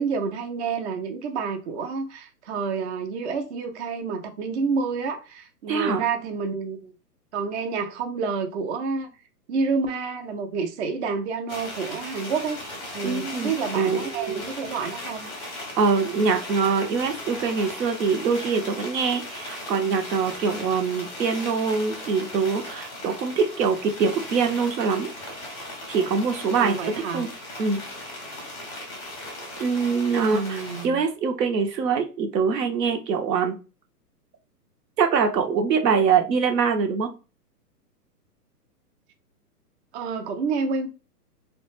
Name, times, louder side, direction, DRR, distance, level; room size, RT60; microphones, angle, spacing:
voice 1, 0.0-6.9 7.3-9.1 9.5-12.6 12.9-15.3 26.6-27.3 30.2-31.0 39.9-40.9, right 5 dB, 45° right, 0.4 m, -29 dB
voice 2, 5.7-6.0 13.0-14.4 15.8-25.1 25.9-26.8 27.1-27.3 27.6-27.8 29.6-30.6 30.8-33.6 35.0-37.1, right 5 dB, 85° right, 0.7 m, -24 dB
sound 1, 11.5-30.9, left 1 dB, 20° left, 0.5 m, -37 dB
2.2 x 2.1 x 3.0 m
hypercardioid pair, 135°, 48 cm